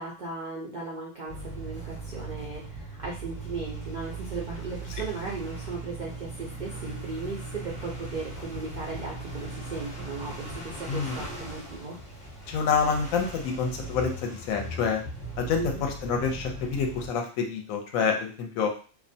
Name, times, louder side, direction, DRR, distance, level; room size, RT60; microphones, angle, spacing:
voice 1, 0.0-12.0 15.5-15.8, right 3 dB, 75° right, -3 dB, 0.4 m, -37 dB
sound 1, 1.3-17.1, right 2 dB, 40° left, 0.8 m, -39 dB
voice 2, 10.9-11.2 12.5-15.0 15.4-18.7, left 5 dB, 75° left, 3 dB, 1.0 m, -27 dB
2.6 x 2.1 x 2.6 m, 0.38 s
omnidirectional pair, 1.5 m